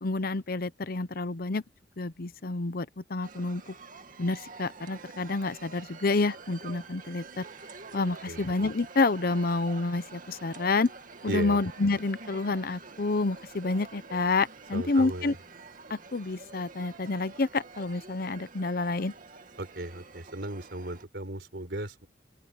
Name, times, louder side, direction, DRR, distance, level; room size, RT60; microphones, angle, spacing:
voice 1, 0.0-1.6 2.0-3.6 4.2-7.5 7.9-10.9 11.2-15.3 15.9-19.1, left 3 dB, 55° left, 0.8 m, -29 dB
sound 1, 3.2-21.1, right 4 dB, 50° right, 2.2 m, -48 dB
voice 2, 11.3-11.6 14.7-15.4 19.6-22.1, right 1 dB, 70° right, 4.3 m, -36 dB
open air
head